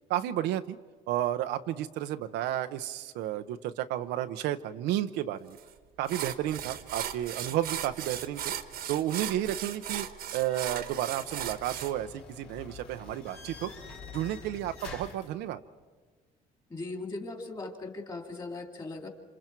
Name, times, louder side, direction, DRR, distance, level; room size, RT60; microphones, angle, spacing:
voice 1, 0.1-0.8 1.1-5.6 6.0-8.4 8.9-10.1 10.3-13.7 14.1-15.6, right 12 dB, 85° right, 8 dB, 0.7 m, -32 dB
sound 1, 5.6-5.7 6.1-11.9, right 10 dB, 65° right, 1.3 m, -37 dB
sound 2, 10.3-15.3, left 4 dB, 80° left, 5.8 m, -47 dB
voice 2, 16.7-19.1, left 2 dB, 25° left, 4 dB, 2.7 m, -39 dB
27.5 x 27.0 x 4.6 m, 1.4 s
cardioid pair, 110°, 17 cm